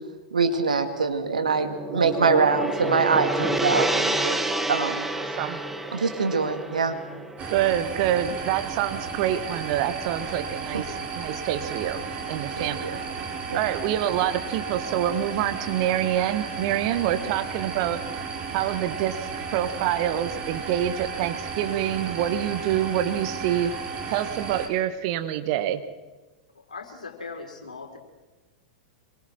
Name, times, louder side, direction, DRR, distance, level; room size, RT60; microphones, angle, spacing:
voice 1, 0.3-4.4 4.7-5.1 5.9-7.0 12.6-13.0 13.5-13.6, right 4 dB, 75° right, 6 dB, 2.4 m, -24 dB
Gong, 1.2-9.6, right 2 dB, 5° right, 1.5 m, -29 dB
voice 2, 5.2-5.6 7.5-12.0 12.3-12.9 13.5-18.0 18.5-23.7 24.1-25.8, right 11 dB, 45° right, 10 dB, 1.6 m, -26 dB
sound 1, 7.4-24.7, right 5 dB, 30° right, 3.8 m, -34 dB
voice 3, 26.7-28.0, left 4 dB, 80° left, 3 dB, 4.0 m, -39 dB
26.5 x 22.5 x 4.5 m, 1.2 s
figure-of-eight pair, 95°, 4 cm